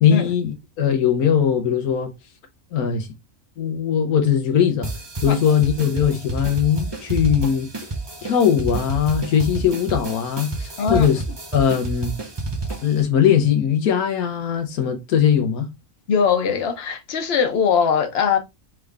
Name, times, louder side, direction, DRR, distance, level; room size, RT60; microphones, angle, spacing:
voice 1, 0.0-2.1 2.7-3.1 3.6-4.9 5.2-7.7 8.2-11.2 11.5-12.2 12.8-15.7, left 8 dB, 85° left, 1.3 m, -20 dB
sound 1, 4.8-13.0, right 3 dB, 30° right, 0.5 m, -30 dB
voice 2, 10.8-11.1 16.1-18.4, left 6 dB, 50° left, 1.0 m, -20 dB
3.7 x 3.3 x 3.5 m
omnidirectional pair, 1.5 m